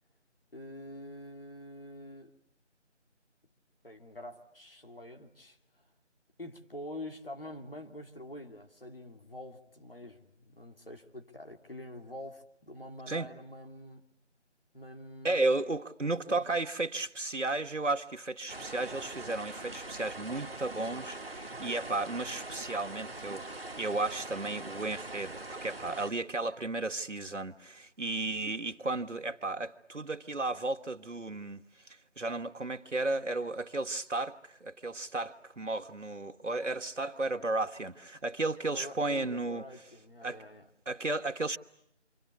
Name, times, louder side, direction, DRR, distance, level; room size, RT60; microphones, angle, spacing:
voice 1, 0.5-2.3 3.8-5.6 6.4-14.0 14.7-15.4 16.0-16.4 38.7-40.7, left 1 dB, 50° left, 2.6 m, -46 dB
voice 2, 15.2-31.6 31.9-39.6 40.2-40.4 40.9-41.6, right 2 dB, 85° right, 1.6 m, -34 dB
sound 1, 18.5-26.1, right 2 dB, 55° right, 1.0 m, -42 dB
28.0 x 25.0 x 8.3 m
figure-of-eight pair, 175°, 36 cm